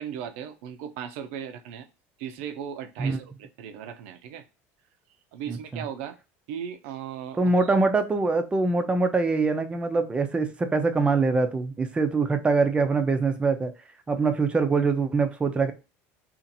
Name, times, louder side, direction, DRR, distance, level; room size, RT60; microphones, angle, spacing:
voice 1, 0.0-1.9 2.2-4.5 5.3-6.2 6.5-7.7, right 8 dB, 80° right, 10 dB, 0.5 m, -37 dB
voice 2, 5.5-5.8 7.4-13.7 14.1-15.7, right 4 dB, 15° right, 7 dB, 0.5 m, -24 dB
2.8 x 2.5 x 3.9 m, 0.30 s
supercardioid pair, 135°, 7 cm